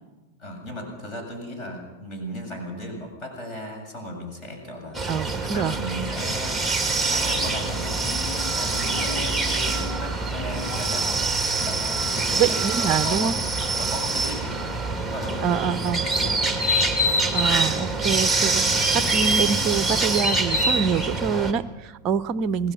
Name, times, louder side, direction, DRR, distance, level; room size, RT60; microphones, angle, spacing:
voice 1, 0.4-5.0 5.4-6.6 7.1-8.0 8.5-11.3 11.6-13.3 13.7-14.6 15.1-16.4, equal, 35° left, 3 dB, 7.5 m, -36 dB
sound 1, 4.9-21.5, right 2 dB, 5° left, 2.5 m, -24 dB
voice 2, 5.1-5.8 12.3-13.4 15.4-16.1 17.3-18.7 18.9-22.7, right 7 dB, 35° right, 16 dB, 0.7 m, -25 dB
27.5 x 19.0 x 5.9 m, 1.2 s
figure-of-eight pair, 90°, 0 cm